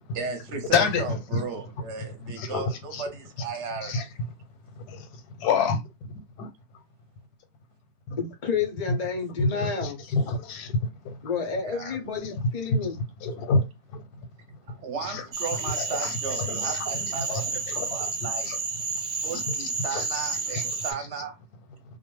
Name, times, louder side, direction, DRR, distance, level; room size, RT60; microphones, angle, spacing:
voice 1, 0.1-4.1 11.6-11.9 14.7-18.6 19.2-21.4, right 5 dB, 60° right, 0.8 m, -35 dB
voice 2, 0.7-1.4 2.4-3.0 3.8-4.0 4.9-5.8 6.4-6.5 8.1-8.2 8.9-9.0 9.4-11.2 12.7-12.8 13.2-13.7 15.1-15.2 15.8-16.8 17.3-17.9 18.4-18.6 19.3-19.4 19.9-20.6, left 4 dB, 90° left, 1.2 m, -28 dB
voice 3, 8.2-10.0 11.2-12.9, left 6 dB, 70° left, 0.4 m, -30 dB
Cricket / Frog, 15.3-20.9, right 4 dB, 85° right, 0.4 m, -31 dB
2.5 x 2.3 x 3.0 m
omnidirectional pair, 1.6 m